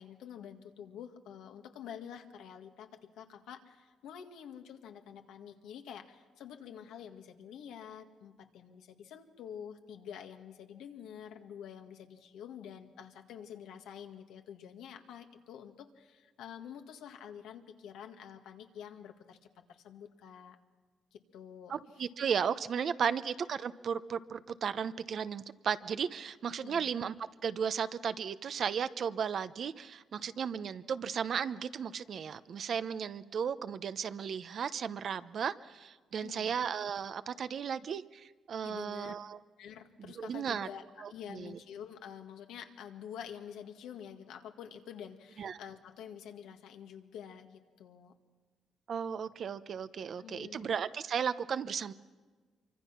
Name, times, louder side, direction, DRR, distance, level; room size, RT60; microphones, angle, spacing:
voice 1, 0.0-19.4 19.7-20.6 21.1-21.7 23.1-23.2 26.6-26.9 36.2-36.5 38.6-39.2 39.6-48.1 50.2-50.7, left 8 dB, 85° left, 5 dB, 1.9 m, -48 dB
voice 2, 21.7-27.1 27.4-39.4 40.0-40.7 41.0-41.6 45.4-45.6 48.9-51.9, right 7 dB, 55° right, 13 dB, 0.8 m, -35 dB
25.5 x 24.5 x 5.9 m, 1.4 s
cardioid pair, 90°, 0 cm